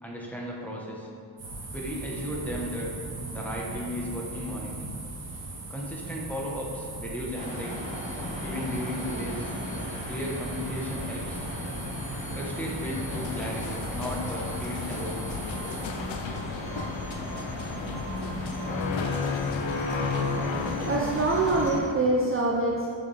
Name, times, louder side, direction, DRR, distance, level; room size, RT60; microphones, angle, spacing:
voice 1, 0.0-1.1 1.7-2.9 3.3-4.7 5.7-7.8 8.4-9.5 10.1-11.4 12.3-15.2, equal, 5° left, -3 dB, 0.9 m, -35 dB
sound 1, 1.4-15.9, right 2 dB, 70° right, 1.5 m, -39 dB
sound 2, 7.3-21.8, left 1 dB, 50° left, 1.4 m, -36 dB
sound 3, 13.1-21.7, left 5 dB, 70° left, 0.6 m, -33 dB
voice 2, 20.3-22.9, right 2 dB, 30° right, -3 dB, 0.5 m, -25 dB
6.5 x 6.4 x 3.3 m, 2.4 s
wide cardioid pair, 140°, 48 cm